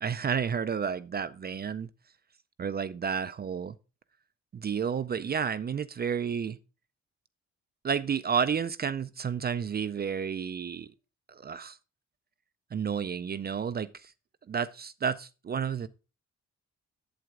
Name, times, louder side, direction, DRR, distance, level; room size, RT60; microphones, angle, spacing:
voice 1, 0.0-1.9 2.6-3.8 4.5-6.6 7.8-10.9 11.3-11.8 12.7-14.1 14.5-15.9, right 7 dB, 35° right, 0.4 m, -31 dB
7.9 x 7.9 x 3.6 m
cardioid pair, 100°, 30 cm